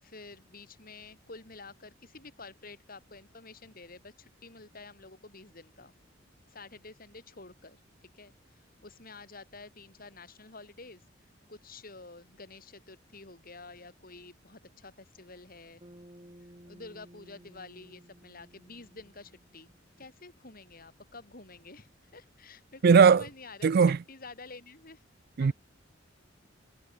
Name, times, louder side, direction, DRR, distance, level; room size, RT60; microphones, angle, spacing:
voice 1, 0.0-5.9 6.5-11.0 11.5-15.8 16.6-19.7 20.0-23.7 24.1-25.0 25.4-25.5, left 3 dB, 50° left, 4.8 m, -49 dB
Bass guitar, 15.8-20.2, equal, 30° right, 7.1 m, -55 dB
voice 2, 22.8-23.3 23.6-24.0 25.4-25.5, right 6 dB, 50° right, 0.4 m, -19 dB
head